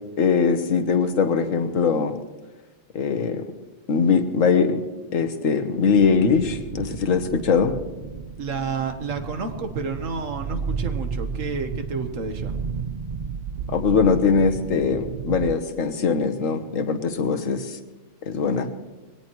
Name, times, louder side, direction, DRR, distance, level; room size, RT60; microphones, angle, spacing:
voice 1, 0.2-2.1 2.9-3.4 3.9-4.8 5.1-7.7 13.7-17.8 18.2-18.7, left 5 dB, 85° left, 7 dB, 1.5 m, -21 dB
sound 1, 5.9-15.6, right 6 dB, 50° right, 0.5 m, -33 dB
voice 2, 8.4-12.5, right 4 dB, 80° right, 7 dB, 1.6 m, -30 dB
21.5 x 17.5 x 3.1 m, 1.1 s
omnidirectional pair, 1.3 m